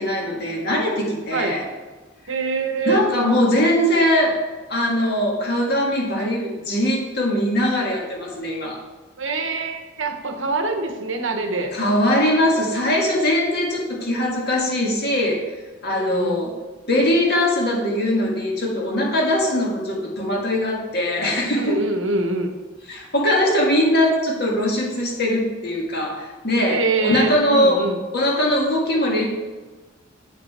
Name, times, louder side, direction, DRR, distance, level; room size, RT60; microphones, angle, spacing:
voice 1, 0.0-1.7 2.9-4.4 4.7-8.8 11.7-15.4 15.8-16.5 16.9-21.8 22.9-27.9 28.1-29.3, left 1 dB, 55° left, -2 dB, 2.0 m, -21 dB
voice 2, 2.3-3.0 9.2-11.7 15.9-16.4 21.6-22.6 26.7-28.0, right 3 dB, 80° right, 5 dB, 1.1 m, -24 dB
9.0 x 6.1 x 4.3 m, 1.3 s
head